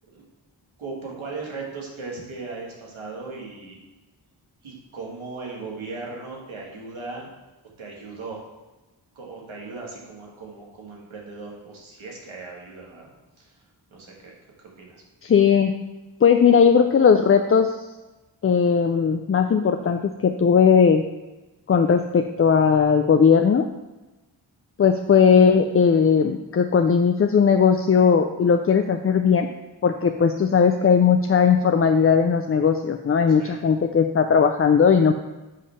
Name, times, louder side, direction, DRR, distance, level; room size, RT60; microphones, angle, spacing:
voice 1, 0.8-3.8 4.6-7.3 7.8-8.4 9.1-13.1 13.4-13.6 13.9-15.0 33.3-33.6, right 3 dB, 90° right, -2 dB, 1.6 m, -37 dB
voice 2, 15.2-15.7 16.2-17.7 18.4-21.0 21.7-23.7 24.8-29.5 29.8-35.1, left 6 dB, 30° left, 6 dB, 0.4 m, -18 dB
7.4 x 3.3 x 5.6 m, 1.1 s
cardioid pair, 45°, 47 cm